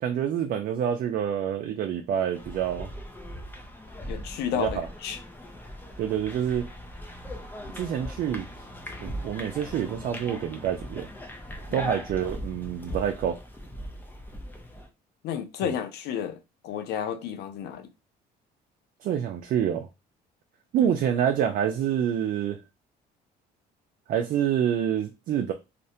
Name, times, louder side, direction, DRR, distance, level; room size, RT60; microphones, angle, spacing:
voice 1, 0.0-2.9 4.5-4.9 6.0-6.6 7.7-8.5 9.0-11.1 11.7-13.4 15.6-15.7 19.0-19.9 20.7-22.6 24.1-25.5, right 9 dB, 55° right, 0.4 m, -27 dB
sound 1, 2.3-14.9, equal, 10° left, 0.5 m, -39 dB
voice 2, 4.1-5.2 11.7-11.9 15.2-17.9 20.8-20.9, left 9 dB, 75° left, 0.5 m, -32 dB
2.5 x 2.0 x 2.8 m
cardioid pair, 110°, 17 cm